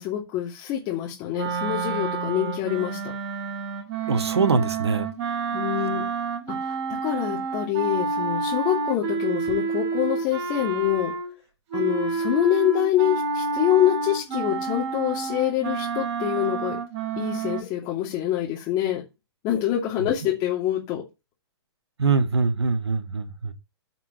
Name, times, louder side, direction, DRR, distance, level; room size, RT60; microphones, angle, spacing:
voice 1, 0.0-3.0 5.5-6.0 6.5-11.1 11.7-16.8 17.2-19.0 19.4-21.0, left 12 dB, 30° left, 2.5 m, -25 dB
sound 1, 1.3-11.4 11.7-17.6, right 4 dB, 40° right, 4.4 m, -29 dB
voice 2, 4.1-5.1 22.0-23.5, right 4 dB, 75° right, 1.5 m, -23 dB
13.5 x 6.1 x 3.1 m
figure-of-eight pair, 115°, 14 cm